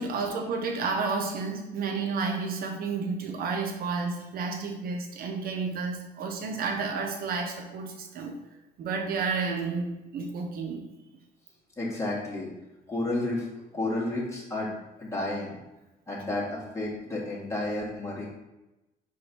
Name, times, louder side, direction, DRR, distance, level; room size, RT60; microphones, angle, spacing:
voice 1, 0.0-8.3 8.8-10.9, right 4 dB, 60° right, 2 dB, 1.2 m, -31 dB
voice 2, 11.8-12.5 12.9-13.5 13.7-14.7 15.0-15.5 16.1-18.3, left 2 dB, 15° left, -5 dB, 2.4 m, -31 dB
5.3 x 4.3 x 5.9 m, 0.97 s
cardioid pair, 110°, 17 cm